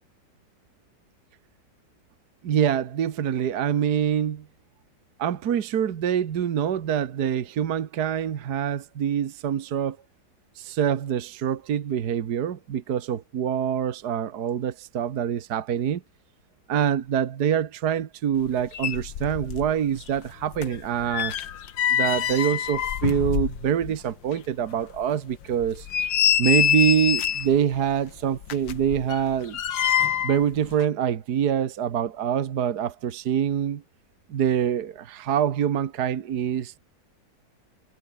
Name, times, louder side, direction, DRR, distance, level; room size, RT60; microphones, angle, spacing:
voice 1, 2.4-4.4 5.2-10.0 10.6-16.0 16.7-21.3 21.9-25.9 26.4-29.6 30.2-33.8 34.3-36.8, right 9 dB, 60° right, 1.7 m, -25 dB
sound 1, 18.5-18.6 18.7-19.7 20.0-24.0 24.3-24.4 24.9-25.0 25.6-27.6 28.4-30.4 30.7-30.8, left 9 dB, 85° left, 2.0 m, -25 dB
omnidirectional pair, 2.0 m